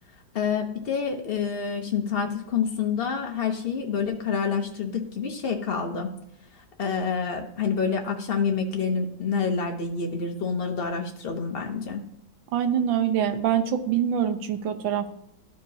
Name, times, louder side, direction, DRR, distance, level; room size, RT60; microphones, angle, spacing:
voice 1, 0.3-6.1 6.5-12.0, left 6 dB, 75° left, 3 dB, 0.5 m, -28 dB
voice 2, 12.5-15.1, right 9 dB, 80° right, 8 dB, 1.5 m, -24 dB
12.5 x 4.7 x 2.7 m, 0.77 s
omnidirectional pair, 2.1 m